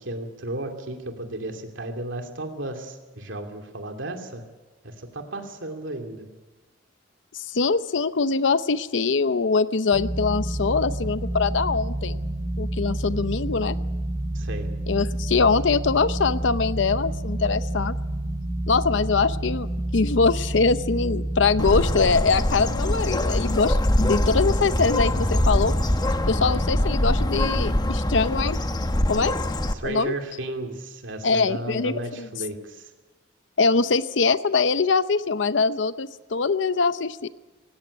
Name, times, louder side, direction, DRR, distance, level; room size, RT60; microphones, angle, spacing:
voice 1, 0.0-4.4 4.8-6.3 14.3-14.7 26.5-26.6 29.7-32.9, right 1 dB, 85° right, 4 dB, 2.6 m, -34 dB
voice 2, 7.5-12.2 12.6-13.8 14.9-17.9 18.7-19.7 19.9-25.7 26.3-28.6 29.1-29.3 29.8-30.1 31.2-32.3 33.6-37.3, left 4 dB, 70° left, 14 dB, 0.7 m, -23 dB
sound 1, 9.9-22.0, right 1 dB, 10° right, 7.2 m, -29 dB
Bird, 21.6-29.7, left 1 dB, 20° left, 1.1 m, -23 dB
17.5 x 17.0 x 9.9 m, 1.2 s
head